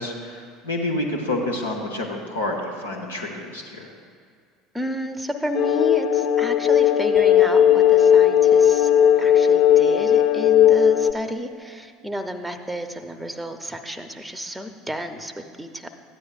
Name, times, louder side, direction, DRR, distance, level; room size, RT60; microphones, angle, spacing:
voice 1, 0.0-3.9, left 1 dB, 80° left, 0 dB, 0.9 m, -28 dB
voice 2, 4.7-8.9 9.2-15.9, equal, 5° right, 8 dB, 0.7 m, -31 dB
sound 1, 5.5-11.1, left 9 dB, 50° left, 0.4 m, -16 dB
sound 2, 7.2-12.1, right 8 dB, 30° left, 1.4 m, -42 dB
13.5 x 9.4 x 2.5 m, 2.1 s
figure-of-eight pair, 65°, 0 cm